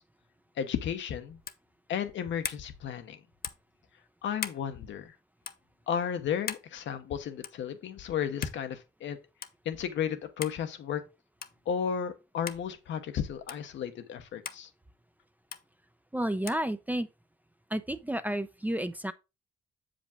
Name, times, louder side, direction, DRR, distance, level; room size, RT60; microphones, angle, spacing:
voice 1, 0.6-1.4 1.9-3.2 4.2-5.1 5.9-9.2 9.6-11.0 11.7-14.7, left 8 dB, 70° left, 0.9 m, -33 dB
sound 1, 1.4-1.7 2.4-2.7 3.4-3.7 4.4-4.6 5.4-5.6 6.5-6.7 7.4-7.7 8.4-8.6 9.4-9.5 10.4-10.6 11.4-11.6 12.5-12.6 13.5-13.6 14.4-14.6 15.5-15.6 16.5-16.6, left 8 dB, 50° left, 0.6 m, -38 dB
voice 2, 16.1-17.1 17.7-19.1, right 1 dB, 10° right, 0.5 m, -31 dB
7.0 x 5.1 x 3.6 m
cardioid pair, 90°, 20 cm